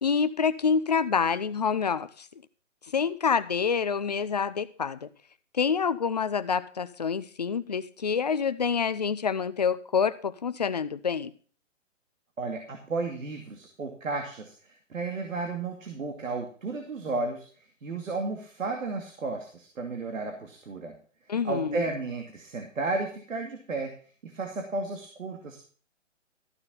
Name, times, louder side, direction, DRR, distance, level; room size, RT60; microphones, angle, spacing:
voice 1, 0.0-2.3 2.9-5.1 5.5-11.3 21.3-21.8, left 6 dB, 35° left, 14 dB, 0.5 m, -27 dB
voice 2, 12.4-20.9 21.4-23.9 24.2-25.7, right 3 dB, 85° right, 3 dB, 2.5 m, -33 dB
14.0 x 6.6 x 5.5 m, 0.42 s
hypercardioid pair, 165°, 38 cm